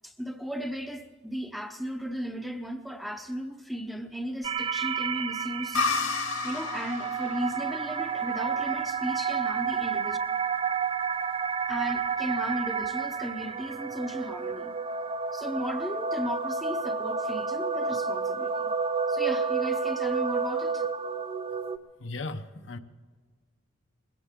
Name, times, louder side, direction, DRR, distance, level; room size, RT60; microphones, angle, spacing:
voice 1, 0.0-5.9 6.4-10.2 11.7-14.7 15.3-18.7 19.1-20.9, equal, ahead, 0.8 m, -35 dB
sound 1, 4.4-21.8, right 5 dB, 25° right, 0.4 m, -30 dB
sound 2, 5.7-9.3, left 4 dB, 80° left, 2.2 m, -32 dB
voice 2, 22.0-22.8, left 2 dB, 60° left, 0.8 m, -36 dB
21.5 x 16.5 x 3.7 m
head